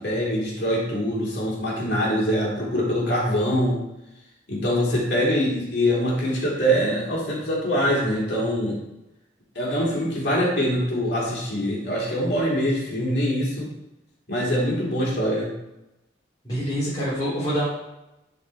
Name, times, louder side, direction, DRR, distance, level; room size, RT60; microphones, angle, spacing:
voice 1, 0.0-3.8 4.5-8.8 9.6-13.7 14.3-15.5, equal, 60° left, -5 dB, 3.5 m, -24 dB
voice 2, 16.4-17.7, equal, 20° left, -11 dB, 3.2 m, -25 dB
11.5 x 5.7 x 4.2 m, 0.93 s
head